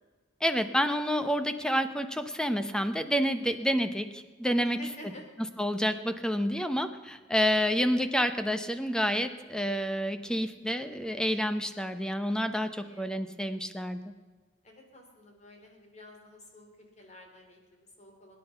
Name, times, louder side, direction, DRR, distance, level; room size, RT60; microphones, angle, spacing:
voice 1, 0.4-4.8 5.6-14.1, equal, 5° left, 9 dB, 0.9 m, -29 dB
voice 2, 4.7-5.2 7.6-7.8 12.3-12.4 12.8-13.1 14.6-18.4, left 1 dB, 35° left, 2 dB, 3.4 m, -51 dB
24.0 x 10.0 x 5.7 m, 1.4 s
head